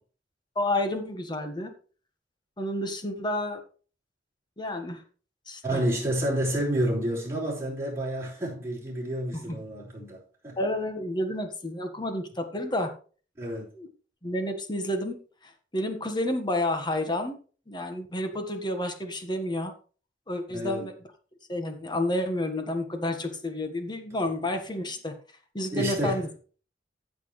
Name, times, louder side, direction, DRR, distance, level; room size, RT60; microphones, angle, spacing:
voice 1, 0.5-1.7 2.6-3.6 4.6-5.0 5.5-5.8 9.3-9.6 10.6-12.9 13.7-13.9 14.2-17.4 17.7-19.7 20.3-20.9 21.5-25.1 25.5-26.3, left 1 dB, 25° left, 1.5 m, -30 dB
voice 2, 5.6-10.6 13.4-13.7 20.5-20.8 25.7-26.2, right 1 dB, 15° right, 5.0 m, -29 dB
15.0 x 6.2 x 3.3 m
head